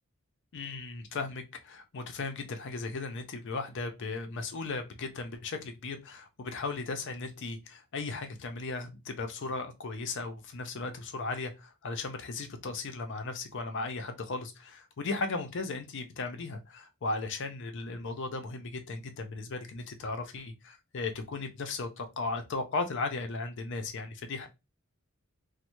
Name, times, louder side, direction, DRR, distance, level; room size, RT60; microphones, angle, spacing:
voice 1, 0.5-24.5, left 3 dB, 60° left, 0.5 m, -36 dB
3.1 x 2.1 x 3.0 m
head